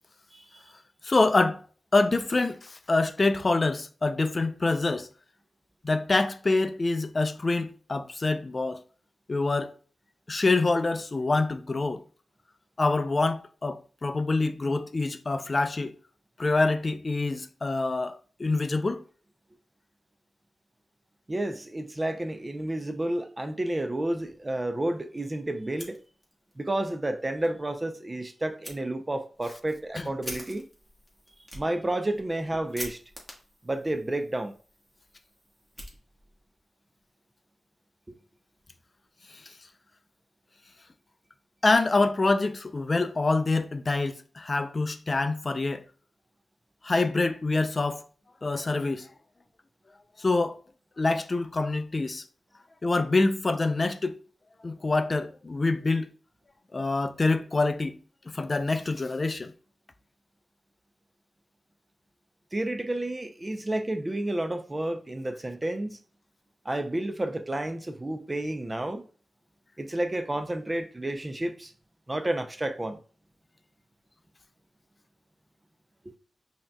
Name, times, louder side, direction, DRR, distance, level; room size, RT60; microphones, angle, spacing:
voice 1, 0.3-0.6 21.3-26.0 26.6-30.7 31.5-33.0 33.6-34.5 38.1-38.2 62.5-66.0 66.6-69.1 69.8-71.7 72.1-73.0 76.1-76.2, right 1 dB, 25° right, 0.5 m, -31 dB
voice 2, 1.0-1.6 1.9-5.1 5.8-8.8 9.3-9.7 10.3-12.0 12.8-15.9 16.4-19.0 30.0-30.1 39.3-39.5 41.6-45.8 46.8-48.0 48.4-49.1 50.2-50.6 51.0-52.2 52.8-54.2 54.6-56.1 56.7-58.0 58.3-59.5, left 3 dB, 40° left, 0.4 m, -26 dB
Fire, 25.6-26.6 26.9-27.0 27.4-27.5 28.6-28.8 29.3-36.5, equal, 5° right, 1.3 m, -45 dB
5.5 x 2.8 x 2.2 m
cardioid pair, 65°, 0 cm